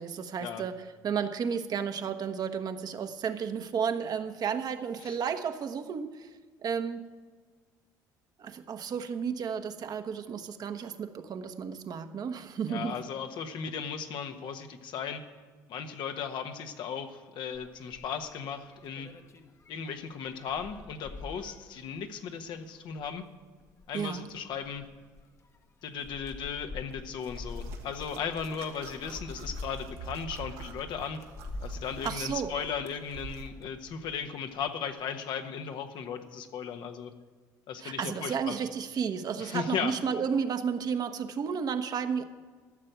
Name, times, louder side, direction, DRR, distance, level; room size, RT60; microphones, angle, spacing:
voice 1, 0.0-6.3 6.6-7.0 8.4-13.0 23.9-24.3 32.0-32.5 37.8-42.2, right 6 dB, 50° right, 8 dB, 1.1 m, -32 dB
voice 2, 12.7-15.2 15.7-19.1 19.7-23.2 23.9-24.9 25.8-31.2 31.6-37.1 37.7-38.5 39.4-39.9, left 7 dB, 65° left, 6 dB, 1.3 m, -36 dB
sound 1, 17.5-34.3 34.6-35.0, left 3 dB, 35° left, 1.2 m, -46 dB
sound 2, 27.2-33.5, right 5 dB, 80° right, 1.5 m, -46 dB
13.5 x 6.7 x 9.2 m, 1.5 s
supercardioid pair, 75°, 9 cm